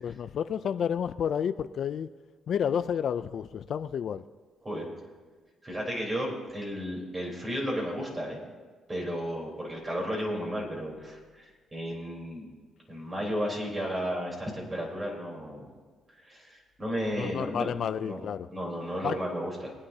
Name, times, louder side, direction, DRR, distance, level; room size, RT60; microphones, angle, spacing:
voice 1, 0.0-2.1 2.5-4.2 17.1-18.5 19.0-19.2, left 8 dB, 60° left, 12 dB, 0.4 m, -30 dB
voice 2, 5.6-8.4 8.9-12.5 12.9-15.7 16.2-17.7 18.0-18.2 18.5-19.7, equal, 25° right, -1 dB, 3.9 m, -33 dB
22.0 x 9.8 x 2.8 m, 1.5 s
cardioid pair, 90°, 0 cm